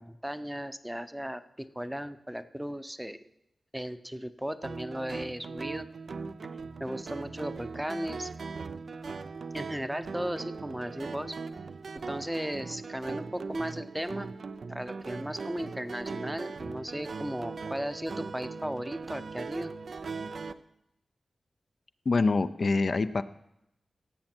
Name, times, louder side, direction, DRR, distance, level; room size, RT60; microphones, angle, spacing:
voice 1, 0.0-3.2 3.7-5.9 6.8-8.3 9.5-11.3 11.9-14.3 14.7-19.7, equal, 5° right, 11 dB, 0.6 m, -36 dB
sound 1, 4.6-20.5, right 4 dB, 70° right, 0.5 m, -39 dB
voice 2, 22.1-23.2, left 3 dB, 55° left, 11 dB, 0.4 m, -25 dB
16.5 x 7.7 x 4.4 m, 0.82 s
cardioid pair, 70°, 0 cm